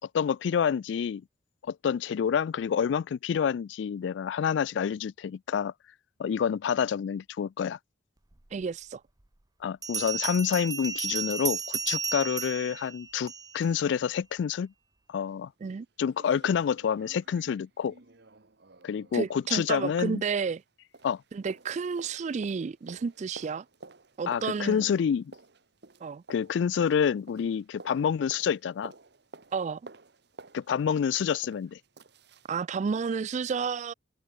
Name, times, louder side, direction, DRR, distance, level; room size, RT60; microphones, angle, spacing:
voice 1, 0.1-1.2 1.6-5.7 6.2-7.8 9.6-14.7 15.1-15.5 16.0-17.9 18.8-20.2 21.0-21.2 24.3-25.3 26.3-28.9 30.5-31.8, left 7 dB, 65° left, 0.3 m, -28 dB
voice 2, 8.5-9.0 15.6-15.9 19.1-20.6 21.3-23.7 24.2-24.8 26.0-26.2 29.5-29.9 32.5-33.9, right 5 dB, 40° right, 0.3 m, -31 dB
Bell, 8.6-8.7 9.8-13.7, right 6 dB, 20° right, 0.8 m, -33 dB
sound 1, 15.3-15.4 15.7-15.8 16.1-20.7 20.9-32.6 32.9-33.0, right 3 dB, 60° right, 1.5 m, -52 dB
open air
head